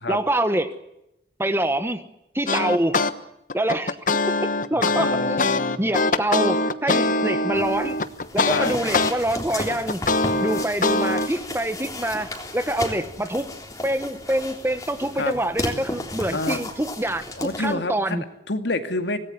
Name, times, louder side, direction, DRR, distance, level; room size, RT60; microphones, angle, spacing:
voice 1, 0.1-0.7 1.4-2.0 2.3-3.0 3.5-5.5 5.8-8.0 8.3-10.0 10.4-13.5 13.8-17.3 17.6-18.2, right 1 dB, 15° right, 10 dB, 1.4 m, -25 dB
sound 1, 2.5-3.1 3.5-9.1 9.5-11.3, left 2 dB, 45° left, 1.2 m, -22 dB
voice 2, 4.7-5.8 8.5-8.7 15.2-15.4 16.3-16.6 17.4-19.2, left 2 dB, 75° left, 7 dB, 2.4 m, -28 dB
sound 2, 7.5-17.7, left 2 dB, 20° left, 3.5 m, -34 dB
25.5 x 19.0 x 9.6 m, 0.84 s
head